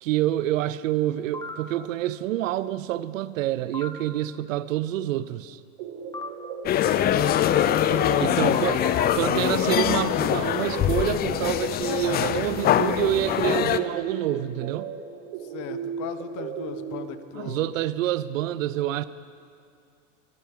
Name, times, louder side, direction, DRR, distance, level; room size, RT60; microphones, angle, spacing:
voice 1, 0.0-5.6 8.2-14.9 17.3-19.1, right 13 dB, 85° right, 0.5 m, -27 dB
sound 1, 1.3-1.6 3.7-3.9 6.1-6.3 8.5-9.1, left 2 dB, 10° left, 1.1 m, -35 dB
sound 2, 5.8-17.1, right 7 dB, 60° right, 1.1 m, -36 dB
sound 3, 6.7-13.8, left 11 dB, 25° left, 0.4 m, -23 dB
voice 2, 6.8-9.2 15.4-17.7, left 10 dB, 50° left, 1.0 m, -38 dB
22.5 x 9.3 x 3.7 m
hypercardioid pair, 90°, 38 cm